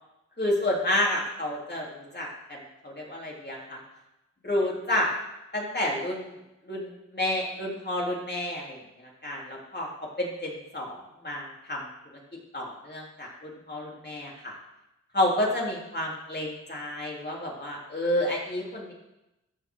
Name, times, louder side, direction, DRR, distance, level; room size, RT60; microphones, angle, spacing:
voice 1, 0.4-3.8 4.4-5.1 5.5-6.3 6.6-8.8 9.2-9.9 10.2-11.8 12.5-14.5 15.1-18.9, left 1 dB, 35° left, -3 dB, 3.7 m, -30 dB
14.5 x 6.5 x 3.9 m, 0.93 s
cardioid pair, 50°, 31 cm